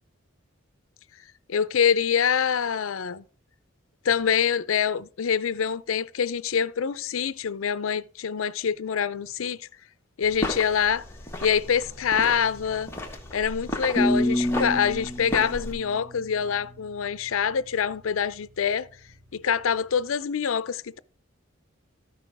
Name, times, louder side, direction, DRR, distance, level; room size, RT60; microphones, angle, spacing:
voice 1, 1.5-3.2 4.0-9.7 10.2-11.0 11.4-12.9 13.3-18.9 19.3-21.0, left 7 dB, 75° left, 0.5 m, -25 dB
sound 1, 10.2-15.7, left 1 dB, 10° left, 1.5 m, -35 dB
sound 2, 14.0-16.9, left 1 dB, 50° right, 4.4 m, -27 dB
13.5 x 6.1 x 3.5 m
head